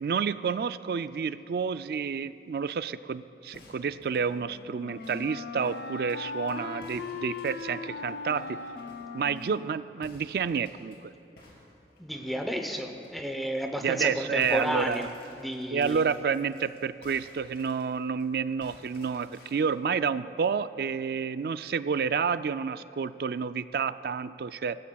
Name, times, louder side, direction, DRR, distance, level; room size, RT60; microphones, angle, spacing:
voice 1, 0.0-8.6 9.1-11.1 13.8-15.1 15.7-24.8, right 6 dB, 60° right, 14 dB, 0.3 m, -30 dB
sound 1, 3.5-6.6 6.8-9.6 10.0-11.0 11.4-13.1 13.5-13.7 14.0-18.2 18.6-19.8, left 1 dB, 65° left, 3.1 m, -55 dB
Wind instrument woodwind instrument, 3.9-10.7, left 4 dB, 80° left, 0.6 m, -40 dB
voice 2, 12.0-15.1 15.4-16.0, equal, ahead, 4 dB, 0.7 m, -32 dB
21.0 x 16.0 x 2.3 m, 2.7 s
head